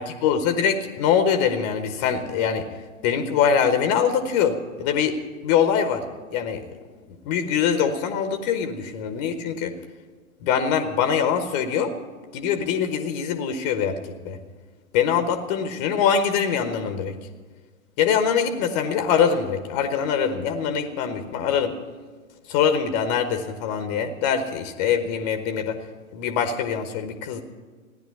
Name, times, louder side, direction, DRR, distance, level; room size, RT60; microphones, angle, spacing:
voice 1, 0.0-2.7 3.0-5.2 5.4-6.0 6.3-6.6 7.2-9.7 10.4-11.9 12.3-14.4 14.9-17.1 18.0-21.7 22.5-25.8 26.1-27.4, left 7 dB, 30° left, 7 dB, 1.1 m, -23 dB
15.5 x 10.5 x 8.3 m, 1.4 s
figure-of-eight pair, 110°, 41 cm